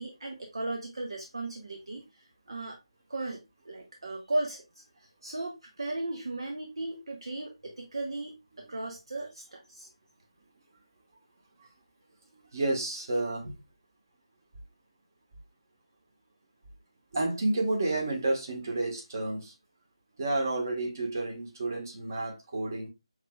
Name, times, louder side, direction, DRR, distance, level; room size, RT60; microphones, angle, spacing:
voice 1, 0.0-2.8 3.1-9.9, right 2 dB, 55° right, 0.9 m, -36 dB
voice 2, 12.3-13.5 17.1-19.5 20.2-22.9, right 2 dB, 35° right, 1.5 m, -30 dB
5.6 x 3.2 x 2.3 m
figure-of-eight pair, 160°, 3 cm